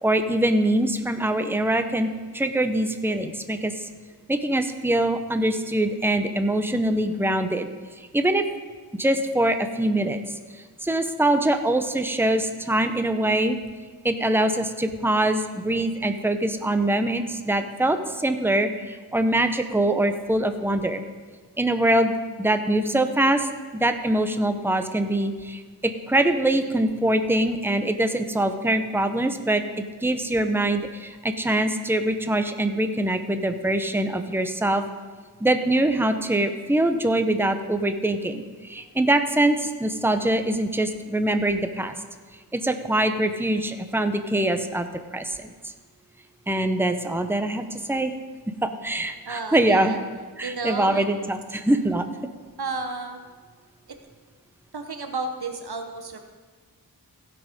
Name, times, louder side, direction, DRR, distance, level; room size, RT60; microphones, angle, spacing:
voice 1, 0.0-3.9 4.3-7.7 8.0-8.5 9.0-10.2 10.5-13.6 14.0-21.0 21.6-29.6 30.0-34.8 35.4-41.9 42.5-44.9 45.1-45.7 46.5-48.1 48.6-50.0 50.4-52.0, right 1 dB, 5° right, 8 dB, 0.8 m, -23 dB
voice 2, 49.2-50.0 50.4-51.1 52.6-53.2 54.7-56.3, right 3 dB, 90° right, 6 dB, 1.1 m, -31 dB
16.0 x 6.1 x 5.2 m, 1.5 s
wide cardioid pair, 40°, 37 cm